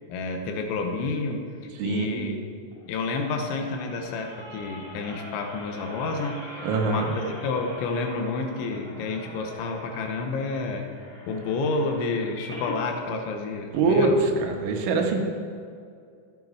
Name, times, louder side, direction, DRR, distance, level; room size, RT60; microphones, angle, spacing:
voice 1, 0.1-1.4 1.8-2.4 2.9-6.4 6.9-10.9 11.3-14.2, left 3 dB, 80° left, 4 dB, 3.3 m, -29 dB
voice 2, 1.8-2.3 6.6-7.1 13.7-15.2, right 4 dB, 80° right, 3 dB, 3.5 m, -24 dB
sound 1, 2.7-12.8 13.3-13.4 13.7-13.8, left 1 dB, 55° left, 0.6 m, -43 dB
14.5 x 9.3 x 4.8 m, 2.4 s
omnidirectional pair, 5.6 m